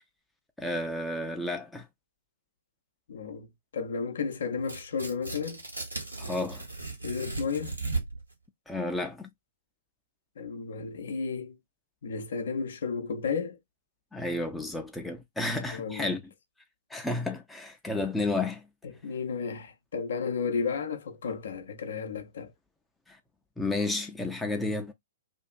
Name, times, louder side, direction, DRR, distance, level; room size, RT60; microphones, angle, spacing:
voice 1, 0.6-1.9 6.2-6.6 8.7-9.3 14.1-16.2 16.9-18.7 23.1-23.2 23.6-24.9, left 2 dB, 5° left, 0.4 m, -31 dB
voice 2, 3.1-3.5 3.7-5.6 7.0-7.8 10.4-11.6 12.0-13.6 15.7-16.1 18.8-22.5, left 5 dB, 60° left, 0.5 m, -33 dB
Tearing, 4.6-8.3, right 3 dB, 85° right, 1.1 m, -36 dB
2.6 x 2.4 x 2.2 m
figure-of-eight pair, 115°, 0 cm